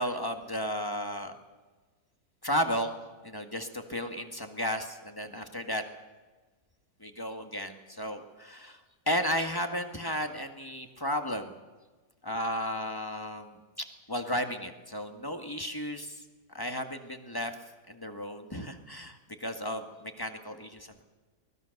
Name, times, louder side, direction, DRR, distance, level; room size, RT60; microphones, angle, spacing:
voice 1, 0.0-1.3 2.4-2.9 3.2-5.8 7.0-8.8 9.1-11.5 12.2-13.6 14.1-16.1 16.5-17.5 17.9-21.0, equal, 15° left, 6 dB, 1.6 m, -33 dB
24.0 x 20.0 x 6.6 m, 1.3 s
omnidirectional pair, 1.8 m